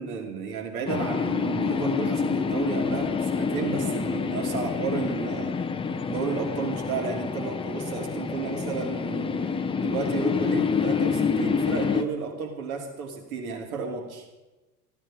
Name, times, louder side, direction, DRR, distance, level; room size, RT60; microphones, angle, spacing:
voice 1, 0.0-5.6 6.1-14.3, right 5 dB, 65° right, 2 dB, 2.7 m, -32 dB
sound 1, 0.9-12.0, left 6 dB, 10° left, 0.6 m, -27 dB
14.0 x 12.5 x 4.9 m, 1.1 s
hypercardioid pair, 85°, 46 cm